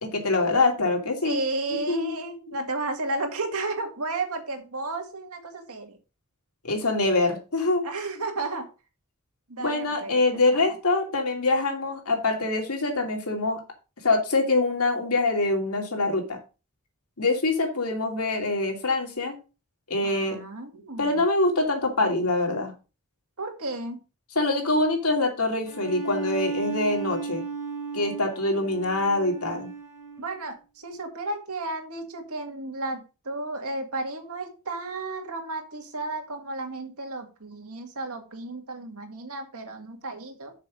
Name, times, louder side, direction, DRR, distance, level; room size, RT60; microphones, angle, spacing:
voice 1, 0.0-1.4 1.7-2.2 6.6-7.8 9.6-13.6 14.0-16.4 17.2-19.4 19.9-20.4 21.0-22.7 24.3-27.4 27.9-29.7, left 2 dB, 85° left, 2 dB, 2.7 m, -24 dB
voice 2, 1.2-6.0 7.8-8.7 9.5-10.2 10.5-10.6 20.0-21.2 23.4-24.0 30.2-40.5, right 2 dB, 80° right, 4 dB, 2.1 m, -33 dB
Bowed string instrument, 25.7-30.4, right 5 dB, 15° right, 3.0 m, -35 dB
6.6 x 5.3 x 6.2 m, 0.31 s
head